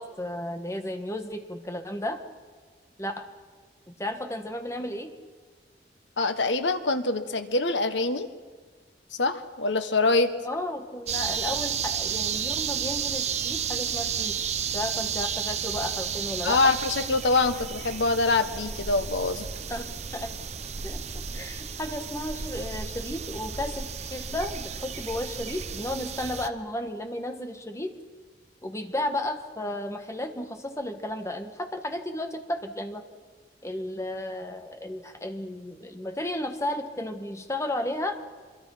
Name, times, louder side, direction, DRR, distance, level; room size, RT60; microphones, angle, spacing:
voice 1, 0.0-2.2 3.0-3.3 3.9-5.1 10.4-14.4 14.7-16.7 19.7-19.8 20.1-20.5 20.8-27.9 28.6-33.0 33.6-38.2, left 1 dB, 15° left, 6 dB, 1.6 m, -33 dB
voice 2, 6.2-8.3 9.2-10.3 16.4-19.5, left 3 dB, 85° left, 9 dB, 1.5 m, -24 dB
sound 1, 11.1-26.5, right 7 dB, 40° right, 0.9 m, -32 dB
25.5 x 23.0 x 5.8 m, 1.5 s
head